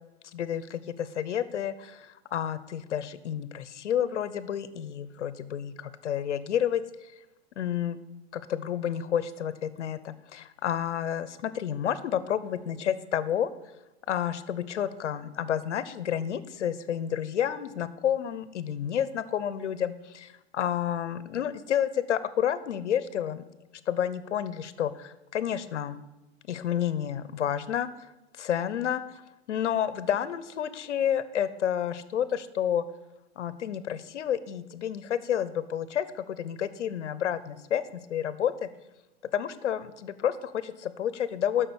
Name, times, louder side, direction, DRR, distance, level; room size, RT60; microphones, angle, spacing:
voice 1, 0.3-7.1 7.6-8.0 8.3-13.5 14.1-23.4 23.9-26.0 26.5-27.9 28.4-29.2 29.5-32.8 33.4-37.8 38.1-38.7 39.3-41.7, left 9 dB, 80° left, 15 dB, 0.9 m, -30 dB
11.0 x 6.3 x 8.0 m, 1.0 s
hypercardioid pair, 115°, 35 cm